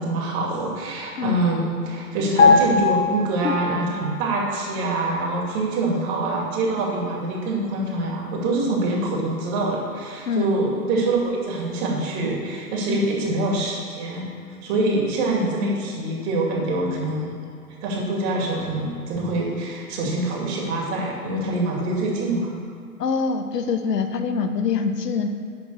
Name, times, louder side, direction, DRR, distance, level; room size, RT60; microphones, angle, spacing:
voice 1, 0.0-14.3 14.6-17.4 17.8-22.5, right 2 dB, 40° right, -2 dB, 2.4 m, -25 dB
sound 1, 2.4-4.0 4.3-4.5, left 4 dB, 55° left, 1.8 m, -19 dB
voice 2, 23.0-25.3, left 5 dB, 85° left, 7 dB, 1.0 m, -24 dB
10.5 x 4.0 x 6.6 m, 2.4 s
hypercardioid pair, 130°, 47 cm